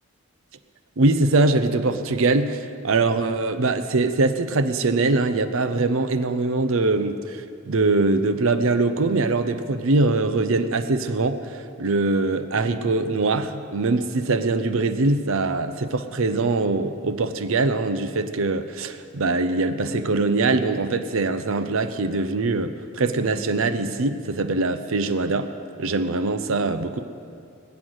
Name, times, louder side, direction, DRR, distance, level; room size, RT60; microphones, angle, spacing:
voice 1, 1.0-25.5 25.8-27.0, right 3 dB, 65° right, 9 dB, 0.7 m, -22 dB
20.0 x 8.0 x 6.4 m, 2.3 s
head